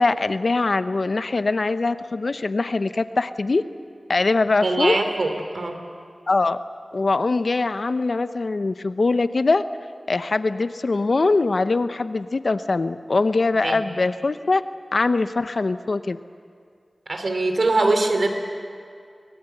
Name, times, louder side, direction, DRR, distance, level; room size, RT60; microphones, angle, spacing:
voice 1, 0.0-3.7 4.1-5.0 6.3-6.6 6.9-9.6 10.1-14.6 14.9-16.2, left 3 dB, 60° left, 12 dB, 0.6 m, -22 dB
voice 2, 4.6-5.8 13.6-13.8 17.1-18.3, right 2 dB, 70° right, 6 dB, 2.7 m, -22 dB
25.0 x 20.5 x 8.0 m, 2.2 s
wide cardioid pair, 80°, 0 cm